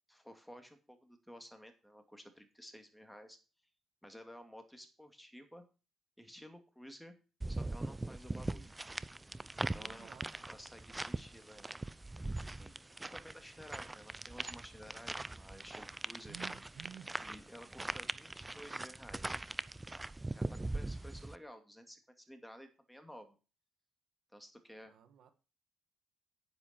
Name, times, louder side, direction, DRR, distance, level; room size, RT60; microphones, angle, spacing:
voice 1, 0.1-3.4 4.0-5.6 6.2-7.2 7.5-8.7 9.2-9.4 9.7-11.7 12.5-12.7 13.0-16.4 17.2-19.4 20.3-23.4 24.3-24.9, equal, ahead, 2.5 m, -54 dB
sound 1, 7.4-21.4, right 2 dB, 15° right, 0.6 m, -41 dB
voice 2, 9.6-10.3 16.3-17.1 24.9-25.3, right 8 dB, 75° right, 1.5 m, -53 dB
9.9 x 9.6 x 4.5 m
cardioid pair, 90°, 0 cm